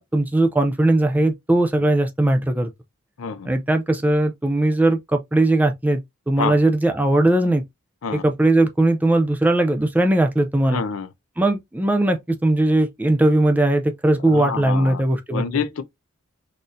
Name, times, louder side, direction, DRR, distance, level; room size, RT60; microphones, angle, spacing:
voice 1, 0.0-2.7 3.5-7.6 8.1-10.8 11.4-15.5, right 1 dB, 10° right, 0.3 m, -19 dB
voice 2, 3.2-3.5 6.4-6.6 8.0-8.2 10.7-11.1 14.2-15.0 15.3-15.8, left 6 dB, 75° left, 0.5 m, -27 dB
4.0 x 2.6 x 2.4 m
head